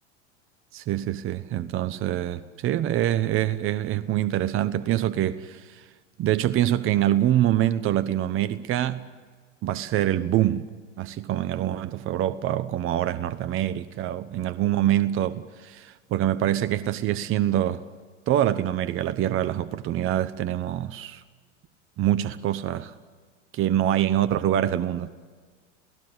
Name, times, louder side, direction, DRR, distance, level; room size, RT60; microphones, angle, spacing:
voice 1, 0.7-5.8 6.2-9.0 9.6-10.7 11.0-17.8 18.3-21.2 22.0-22.9 23.6-25.1, right 12 dB, 35° right, 1.0 m, -25 dB
28.5 x 17.5 x 8.1 m
hypercardioid pair, 100°, 37 cm